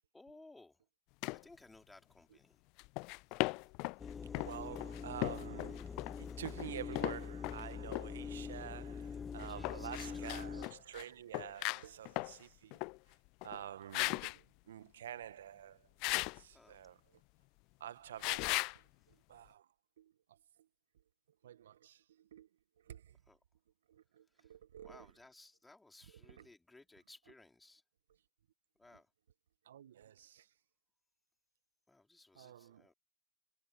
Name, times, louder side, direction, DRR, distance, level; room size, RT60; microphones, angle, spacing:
voice 1, 0.1-0.8 1.3-2.6 4.6-4.9 9.4-10.9 16.5-16.9 23.3-23.4 24.3-24.5 24.8-27.8 28.7-29.1 31.9-32.9, left 2 dB, 10° left, 4.9 m, -60 dB
sound 1, 1.2-1.4 2.8-4.0 4.3-7.6 7.9-8.1 9.4-11.0 11.3-12.4 12.7-13.0 13.4-13.6 13.9-14.4 16.0-16.4 18.2-18.8, left 28 dB, 60° left, 0.3 m, -37 dB
sound 2, 4.0-10.7, left 6 dB, 30° left, 0.7 m, -44 dB
voice 2, 4.4-12.8 13.4-15.9 16.4-17.0 17.8-18.6 19.3-19.6 20.0-20.1 21.4-22.5 22.9-23.1 23.9-25.1 26.2-26.4 29.7-30.5 32.3-32.8, right 11 dB, 80° right, 1.6 m, -49 dB
hypercardioid pair, 75°, 0 cm